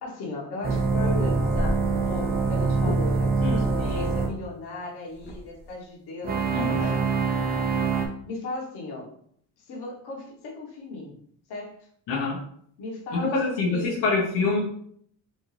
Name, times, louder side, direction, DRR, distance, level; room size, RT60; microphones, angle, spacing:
voice 1, 0.0-7.3 8.2-9.1 9.7-11.2 11.5-11.8 12.8-14.1, left 2 dB, 60° left, -3 dB, 1.3 m, -36 dB
sound 1, 0.6-4.3 6.2-8.1, right 4 dB, 20° right, 0.5 m, -24 dB
sound 2, 1.5-1.9 2.9-3.1 3.4-3.9 5.0-5.7, left 1 dB, 25° left, 0.9 m, -34 dB
voice 2, 6.5-6.8 12.1-12.4 13.1-14.6, left 3 dB, 85° left, -4 dB, 1.3 m, -26 dB
4.3 x 2.6 x 3.2 m, 0.64 s
cardioid pair, 130°, 43 cm